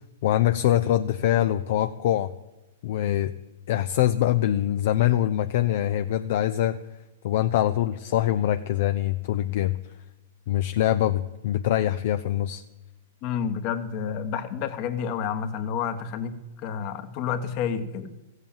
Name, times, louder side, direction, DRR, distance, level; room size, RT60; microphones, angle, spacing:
voice 1, 0.2-2.3 2.8-3.3 3.7-6.8 7.2-9.8 10.5-12.6, left 12 dB, 60° left, 11 dB, 0.5 m, -24 dB
voice 2, 13.2-16.4 16.6-18.1, left 7 dB, 45° left, 9 dB, 1.2 m, -29 dB
14.5 x 8.1 x 7.2 m, 1.1 s
hypercardioid pair, 125°, 0 cm